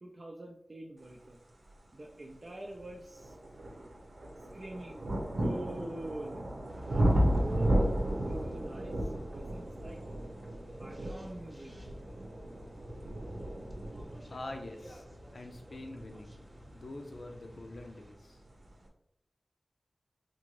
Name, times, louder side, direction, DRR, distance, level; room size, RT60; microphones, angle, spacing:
voice 1, 0.0-1.4 1.9-3.4 4.5-6.4 6.9-7.9 8.2-10.0 10.8-11.7, right 1 dB, 50° right, -1 dB, 0.4 m, -44 dB
sound 1, 2.1-2.2 2.8-17.5 18.4-18.5, equal, 85° right, 0.8 m, -34 dB
sound 2, 6.7-18.1, equal, 15° right, 0.9 m, -52 dB
voice 2, 14.3-15.0 15.3-16.5 16.7-18.4, left 2 dB, 65° left, 4 dB, 0.6 m, -45 dB
3.8 x 2.6 x 3.1 m, 0.76 s
wide cardioid pair, 70°, 0 cm